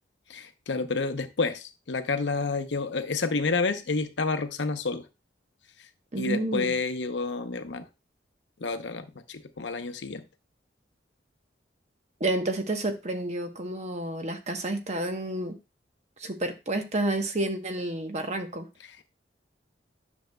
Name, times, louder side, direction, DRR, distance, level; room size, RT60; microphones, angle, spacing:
voice 1, 0.3-5.1 5.8-5.9 6.2-7.9 8.6-10.3 18.8-19.0, left 4 dB, 85° left, 9 dB, 0.8 m, -29 dB
voice 2, 6.1-6.7 12.2-15.6 16.2-18.7, right 1 dB, 40° right, 6 dB, 1.0 m, -30 dB
10.0 x 6.3 x 2.2 m, 0.27 s
head